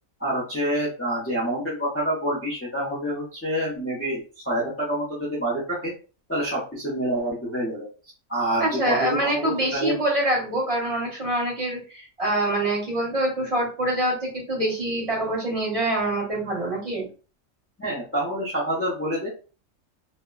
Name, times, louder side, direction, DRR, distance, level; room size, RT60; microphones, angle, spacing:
voice 1, 0.2-4.2 4.4-5.9 6.3-7.9 8.3-10.0 17.8-19.3, right 1 dB, 15° left, -5 dB, 0.4 m, -27 dB
voice 2, 8.6-17.1, right 1 dB, 30° right, -4 dB, 1.2 m, -25 dB
2.7 x 2.1 x 2.3 m, 0.36 s
omnidirectional pair, 1.4 m